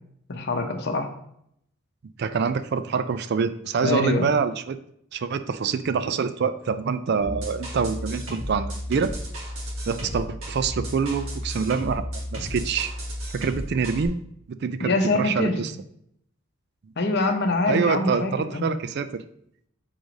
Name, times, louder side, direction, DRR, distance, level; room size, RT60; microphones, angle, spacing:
voice 1, 0.3-1.1 3.8-4.3 14.8-15.6 17.0-18.7, left 2 dB, 50° left, 5 dB, 0.8 m, -24 dB
voice 2, 2.2-4.8 5.1-9.1 9.9-12.0 12.3-12.9 13.3-14.2 14.5-15.7 17.7-19.2, right 5 dB, 50° right, 12 dB, 0.3 m, -26 dB
sound 1, 7.2-14.1, equal, 75° right, 1.5 m, -33 dB
4.8 x 3.9 x 5.0 m, 0.72 s
head